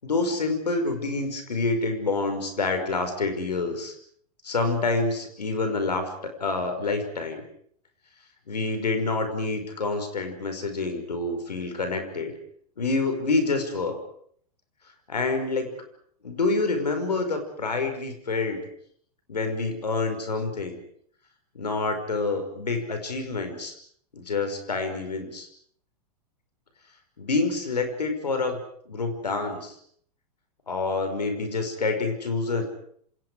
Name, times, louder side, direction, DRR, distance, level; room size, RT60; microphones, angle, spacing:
voice 1, 0.0-3.9 4.4-7.4 8.5-12.3 12.8-14.0 15.1-15.7 16.2-18.7 19.3-20.8 21.5-23.7 24.1-25.5 27.2-28.6 28.9-29.8 30.7-32.6, left 3 dB, 90° left, 7 dB, 5.6 m, -27 dB
28.0 x 26.5 x 5.0 m, 0.62 s
hypercardioid pair, 110°, 20 cm